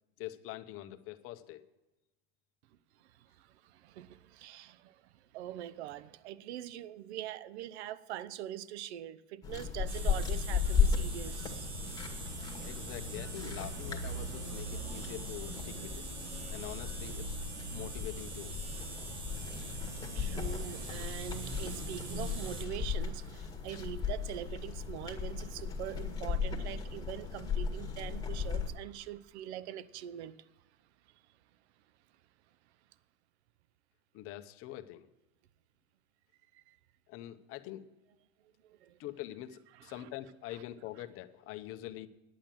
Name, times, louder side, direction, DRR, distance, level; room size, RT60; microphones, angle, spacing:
voice 1, 0.2-1.6 12.6-16.0 16.5-17.4 17.7-18.5 34.1-35.1 37.1-37.9 39.0-42.1, left 14 dB, 40° left, 0.9 m, -44 dB
voice 2, 3.0-11.7 20.1-30.4 36.5-36.8 38.6-39.0 39.8-40.1 40.5-40.6, right 11 dB, 70° right, 0.7 m, -43 dB
sound 1, 9.4-28.7, left 6 dB, 10° left, 1.7 m, -36 dB
sound 2, 9.9-22.6, right 3 dB, 50° right, 2.7 m, -43 dB
10.0 x 8.8 x 7.5 m
supercardioid pair, 130°, 34 cm